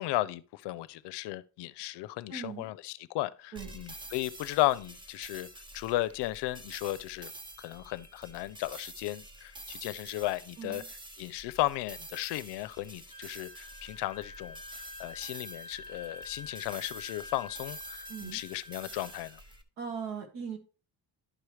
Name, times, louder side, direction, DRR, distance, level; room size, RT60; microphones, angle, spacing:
voice 1, 0.0-5.5 5.7-7.3 7.6-10.8 11.2-19.4, left 17 dB, 75° left, 0.5 m, -35 dB
voice 2, 2.3-2.7 3.5-3.7 10.6-10.9 18.1-18.4 19.8-20.6, right 6 dB, 70° right, 1.9 m, -39 dB
sound 1, 3.6-19.6, right 2 dB, 15° right, 0.3 m, -48 dB
Wind instrument woodwind instrument, 13.1-19.3, left 2 dB, 15° left, 0.7 m, -47 dB
11.0 x 4.9 x 3.1 m
cardioid pair, 175°, 41 cm